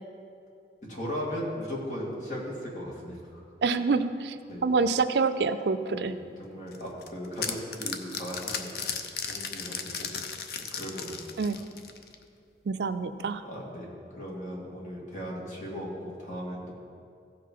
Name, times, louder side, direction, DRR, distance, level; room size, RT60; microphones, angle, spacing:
voice 1, 0.9-3.4 4.5-4.6 5.9-6.0 6.4-8.9 9.3-10.1 10.7-11.2 13.4-13.9 14.2-16.7, equal, 45° left, -4 dB, 2.3 m, -37 dB
voice 2, 3.6-4.4 4.6-6.2 11.4-11.6 12.7-13.4, right 4 dB, 75° right, 10 dB, 0.4 m, -26 dB
sound 1, 6.7-12.2, left 6 dB, 60° left, 0.7 m, -35 dB
15.5 x 5.9 x 4.7 m, 2.4 s
head